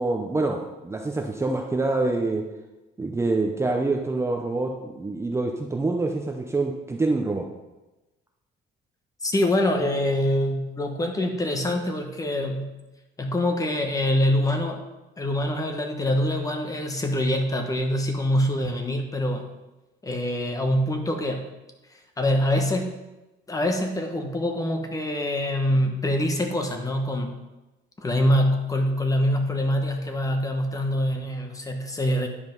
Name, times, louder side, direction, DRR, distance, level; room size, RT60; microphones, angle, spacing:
voice 1, 0.0-2.4 3.0-7.4, right 2 dB, 15° right, 1 dB, 0.7 m, -26 dB
voice 2, 9.2-12.7 13.2-14.8 15.2-19.4 20.0-21.4 22.2-23.0 23.5-27.4 28.0-32.3, left 1 dB, 20° left, 4 dB, 1.1 m, -24 dB
9.9 x 5.1 x 5.3 m, 1.0 s
cardioid pair, 140°, 19 cm